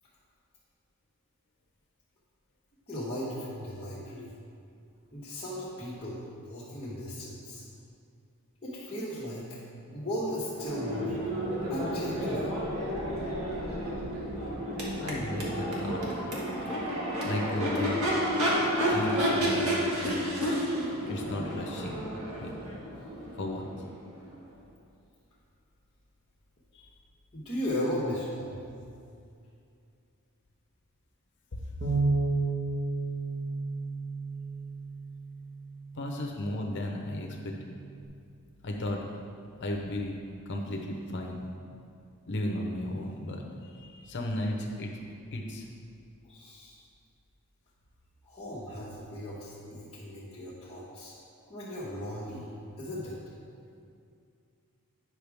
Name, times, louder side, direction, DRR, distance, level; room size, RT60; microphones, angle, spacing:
voice 1, 2.9-4.4 5.1-7.6 8.6-9.6 9.9-11.2 11.6-12.5 27.3-28.7 46.2-46.8 48.2-51.1 51.5-52.5 52.8-53.2, equal, 25° left, -10 dB, 1.2 m, -36 dB
Crowd / Race car auto racing / Accelerating revving vroom, 10.5-24.3, equal, 70° right, 1.5 m, -31 dB
voice 2, 15.0-16.0 17.2-18.1 18.9-20.2 21.1-22.1 22.4-22.5 23.4-23.7 26.7-26.9 31.5-31.6 35.9-37.5 38.6-39.0 39.6-40.2 40.5-41.5 42.3-44.9 45.3-45.6, left 1 dB, 50° left, 1 dB, 0.8 m, -34 dB
Bass guitar, 31.8-36.2 36.9-38.0, right 3 dB, 55° right, 1.5 m, -33 dB
9.6 x 6.0 x 3.5 m, 2.5 s
head